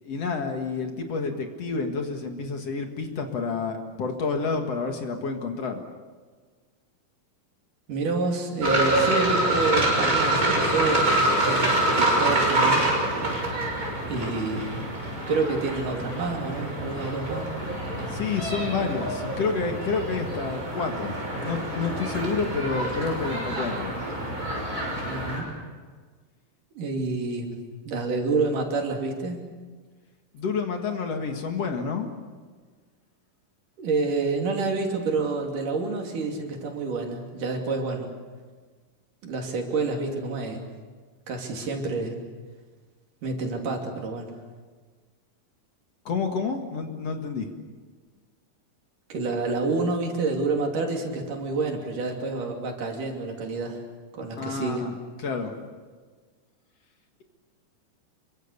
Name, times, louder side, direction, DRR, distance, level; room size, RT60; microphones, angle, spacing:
voice 1, 0.0-5.8 18.1-23.9 30.3-32.1 46.1-47.5 54.4-54.9 55.2-55.5, left 4 dB, 55° left, 4 dB, 2.7 m, -29 dB
voice 2, 7.9-12.9 14.1-14.9 15.3-17.5 25.1-25.5 26.7-27.6 27.8-29.4 33.8-38.1 39.2-40.7 41.3-42.2 43.2-44.3 49.1-53.8 54.1-54.9, right 3 dB, 75° right, 2 dB, 4.5 m, -28 dB
sound 1, 8.6-25.4, right 1 dB, 25° right, 6.9 m, -26 dB
27.0 x 23.5 x 6.8 m, 1.5 s
omnidirectional pair, 3.7 m